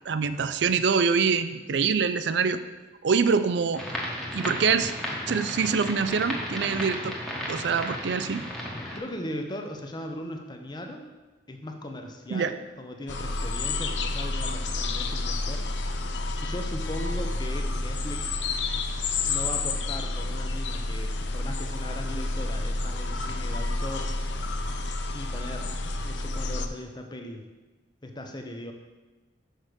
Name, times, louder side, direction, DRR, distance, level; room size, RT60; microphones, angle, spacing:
voice 1, 0.1-2.6 3.0-3.8 4.3-4.9 5.3-7.2 7.5-8.4 12.3-12.5, right 5 dB, 65° right, 12 dB, 0.4 m, -25 dB
sound 1, 3.7-9.0, equal, ahead, 1.2 m, -34 dB
voice 2, 8.9-11.0 11.5-15.7 16.4-18.3 19.2-24.1 25.1-25.7 26.0-27.5 28.0-28.7, left 1 dB, 25° left, 4 dB, 0.8 m, -38 dB
sound 2, 13.1-26.7, left 2 dB, 70° left, 0.6 m, -30 dB
6.5 x 5.0 x 6.3 m, 1.2 s
head